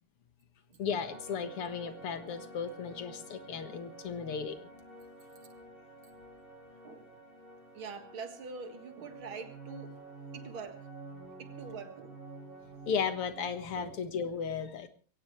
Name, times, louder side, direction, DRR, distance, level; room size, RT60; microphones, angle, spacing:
voice 1, 0.8-4.6 12.9-14.9, left 6 dB, 85° left, 2.5 m, -35 dB
sound 1, 1.0-13.9, right 2 dB, 40° right, 7.9 m, -50 dB
voice 2, 6.8-7.2 7.7-9.9 10.3-10.9 11.4-12.2 13.8-14.0, right 5 dB, 65° right, 2.6 m, -44 dB
22.5 x 17.0 x 3.2 m
omnidirectional pair, 2.4 m